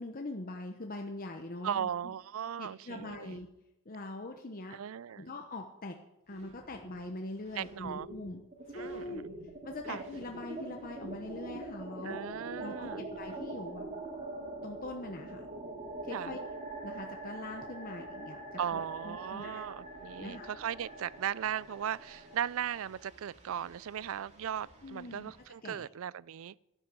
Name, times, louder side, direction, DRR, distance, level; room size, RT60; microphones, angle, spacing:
voice 1, 0.0-2.1 2.6-3.5 3.9-4.8 5.2-6.0 6.3-8.4 8.7-9.2 9.6-12.2 12.6-13.9 14.6-15.4 16.0-16.4 16.8-18.4 18.7-19.6 20.2-20.5 24.8-25.3 25.6-25.9, left 2 dB, 40° left, 0.9 m, -42 dB
voice 2, 1.6-3.4 4.7-5.3 7.6-8.1 8.7-9.4 9.9-10.0 12.0-13.1 16.1-16.4 18.6-26.5, right 9 dB, 65° right, 0.3 m, -37 dB
sound 1, 6.3-7.1 7.4-25.4, right 2 dB, 30° right, 2.3 m, -45 dB
12.5 x 11.0 x 6.2 m
head